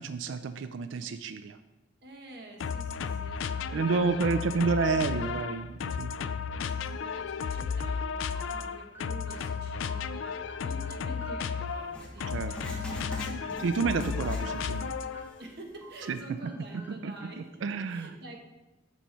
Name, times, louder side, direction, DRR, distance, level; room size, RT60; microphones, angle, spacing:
voice 1, 0.0-1.6 3.7-6.1 12.3-12.5 13.4-15.0 16.1-16.2 17.0-18.1, right 4 dB, 75° right, 11 dB, 0.4 m, -30 dB
voice 2, 2.0-5.7 6.5-13.7 15.4-18.4, right 2 dB, 60° right, 2 dB, 1.2 m, -48 dB
sound 1, 2.6-15.4, left 6 dB, 85° left, 0.3 m, -34 dB
sound 2, 8.3-13.4 13.9-15.5 15.8-17.5, right 1 dB, 10° right, 0.8 m, -52 dB
Writing, 11.9-14.9 15.2-15.3 16.0-16.1, equal, 5° left, 1.2 m, -42 dB
6.9 x 5.7 x 4.3 m, 1.1 s
head